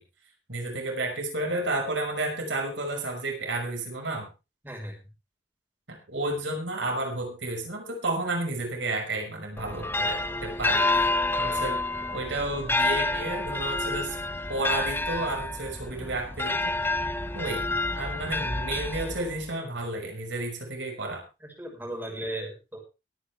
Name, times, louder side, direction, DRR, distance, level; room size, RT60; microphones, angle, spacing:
voice 1, 0.5-4.3 5.9-11.1 11.4-11.8 12.1-14.2 14.5-16.8 17.3-17.7 18.0-21.2, right 2 dB, 85° right, 2 dB, 5.8 m, -31 dB
sound 1, 9.6-19.5, left 2 dB, 10° left, 0.7 m, -28 dB
voice 2, 21.4-22.8, right 1 dB, 10° right, 0 dB, 5.6 m, -36 dB
22.5 x 9.6 x 3.5 m, 0.29 s
head